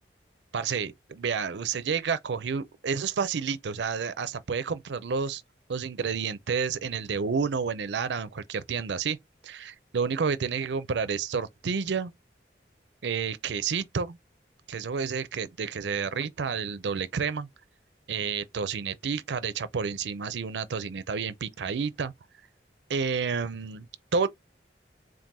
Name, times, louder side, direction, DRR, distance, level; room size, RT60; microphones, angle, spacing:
voice 1, 0.5-5.4 5.7-9.2 9.4-12.1 13.0-14.2 14.7-17.5 18.1-22.1 22.9-23.9 24.1-24.3, right 5 dB, 80° right, 0.5 m, -30 dB
3.7 x 2.5 x 4.0 m
head